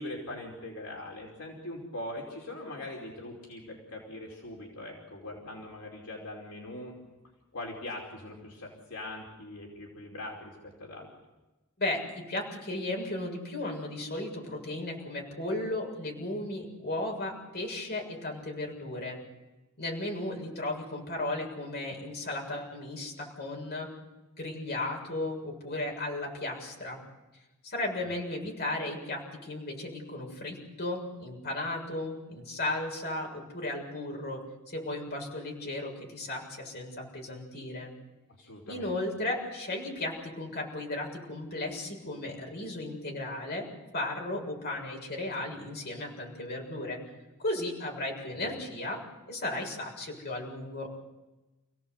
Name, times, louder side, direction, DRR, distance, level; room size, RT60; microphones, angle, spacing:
voice 1, 0.0-7.0 7.5-11.1 28.0-28.2 38.4-39.0 48.3-48.5, left 1 dB, 70° left, -1 dB, 5.0 m, -41 dB
voice 2, 11.8-19.2 19.8-23.9 24.4-27.0 27.6-37.9 38.7-43.7 43.9-47.0 47.4-49.0 49.3-50.9, left 2 dB, 50° left, 0 dB, 7.0 m, -35 dB
30.0 x 17.5 x 8.1 m, 1.1 s
head